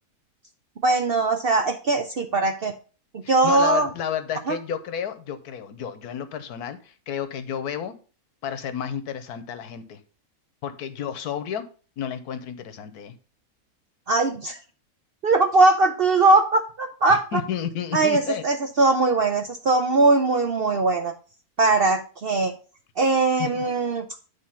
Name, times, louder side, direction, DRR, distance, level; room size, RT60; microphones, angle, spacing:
voice 1, 0.8-2.7 3.1-3.9 4.5-4.6 14.1-14.6 15.2-17.4 17.9-21.1 21.6-22.5 23.0-24.0, right 3 dB, 60° right, 6 dB, 0.6 m, -20 dB
voice 2, 3.2-7.9 8.4-10.0 10.6-11.6 12.0-13.1 17.3-18.4 23.4-23.6, left 8 dB, 80° left, 11 dB, 1.3 m, -31 dB
9.4 x 3.5 x 5.6 m, 0.37 s
omnidirectional pair, 1.6 m